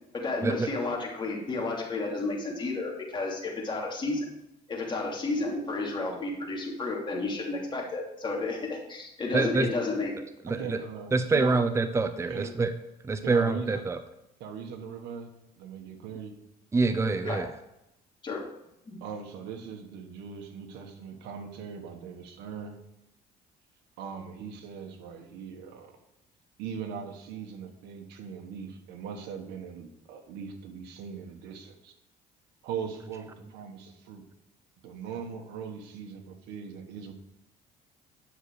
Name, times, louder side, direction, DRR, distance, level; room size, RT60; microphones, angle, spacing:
voice 1, 0.1-4.2 4.7-10.1 17.2-17.4 18.2-18.4 18.9-19.0, left 3 dB, 30° left, -2 dB, 3.0 m, -32 dB
voice 2, 9.3-9.7 10.4-10.8 11.1-12.7 13.0-14.0 16.7-17.5, right 3 dB, 15° right, 9 dB, 0.6 m, -26 dB
voice 3, 10.5-11.6 12.3-12.5 13.2-13.8 14.4-15.3 15.6-16.4 19.0-22.8 24.0-26.0 26.6-31.9 32.6-34.3 34.8-37.1, right 6 dB, 85° right, 4 dB, 1.4 m, -40 dB
10.0 x 6.4 x 4.8 m, 0.89 s
cardioid pair, 110°, 17 cm